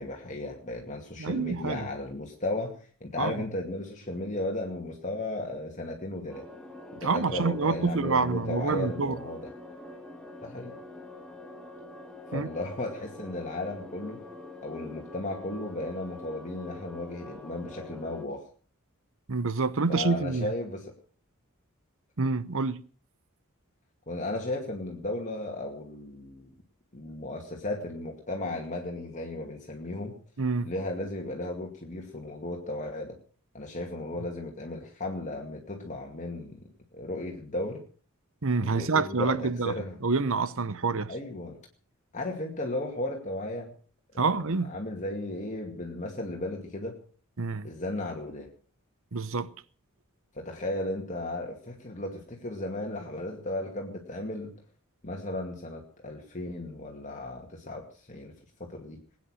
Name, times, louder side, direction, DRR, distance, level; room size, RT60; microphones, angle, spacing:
voice 1, 0.0-6.4 6.9-9.5 10.4-10.7 12.3-14.2 14.6-18.5 19.9-20.9 24.1-26.5 26.9-30.2 30.6-33.1 33.5-36.6 36.9-37.8 38.6-39.9 41.1-41.6 42.1-43.7 44.1-47.0 47.6-48.5 50.3-54.5 55.0-58.3 58.6-59.0, left 2 dB, 35° left, 2.3 m, -35 dB
voice 2, 1.2-1.9 3.2-3.4 7.0-9.2 12.3-12.5 19.3-20.5 22.2-22.8 30.4-30.7 38.4-39.7 40.0-41.1 44.2-44.8 47.4-47.7 49.1-49.5, right 4 dB, 65° right, 1.0 m, -27 dB
sound 1, 6.3-18.2, left 2 dB, 5° left, 2.1 m, -45 dB
21.0 x 9.5 x 6.5 m
head